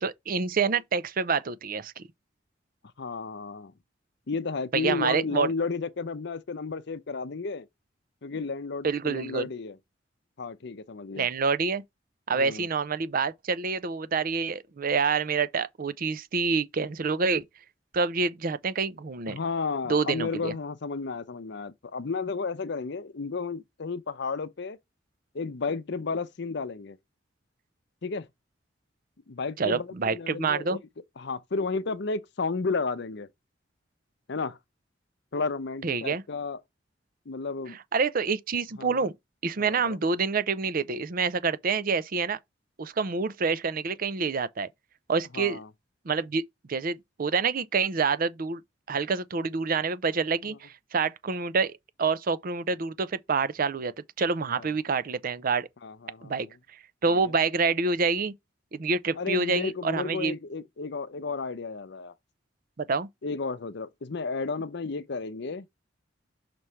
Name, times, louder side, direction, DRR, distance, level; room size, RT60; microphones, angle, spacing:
voice 1, 0.0-2.0 4.7-5.5 8.8-9.5 11.2-11.8 12.3-17.4 17.9-19.4 19.9-20.5 29.6-30.8 35.8-36.2 37.9-39.1 39.4-42.4 42.8-44.7 45.1-45.6 46.1-46.4 46.7-48.6 48.9-55.7 56.2-56.5 57.0-58.3 58.7-60.3 62.8-63.1, right 4 dB, 50° right, 0.5 m, -27 dB
voice 2, 3.0-3.7 4.3-7.7 8.2-9.8 10.4-11.3 12.3-12.7 19.2-24.8 25.3-27.0 28.0-28.3 29.3-30.8 31.2-33.3 34.3-34.6 35.3-36.6 37.3-37.8 38.8-39.1 39.6-40.0 45.3-45.7 54.5-54.7 55.8-56.5 57.1-57.3 59.2-62.1 63.2-65.7, left 4 dB, 65° left, 0.7 m, -33 dB
6.0 x 3.2 x 5.5 m
head